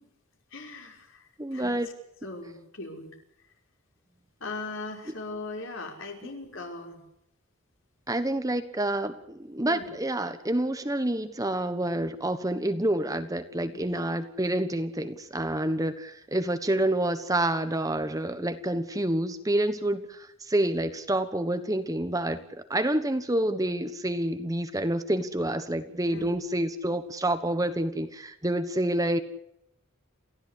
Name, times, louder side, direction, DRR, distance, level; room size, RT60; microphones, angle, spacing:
voice 1, 0.5-1.7 2.2-3.1 4.4-7.0 9.7-9.9 13.7-14.1 15.6-15.8 26.1-26.4, left 3 dB, 60° left, 3 dB, 5.6 m, -39 dB
voice 2, 1.4-1.9 8.1-22.4 22.7-29.2, right 1 dB, 15° right, 9 dB, 1.3 m, -28 dB
29.0 x 15.5 x 8.4 m, 0.79 s
head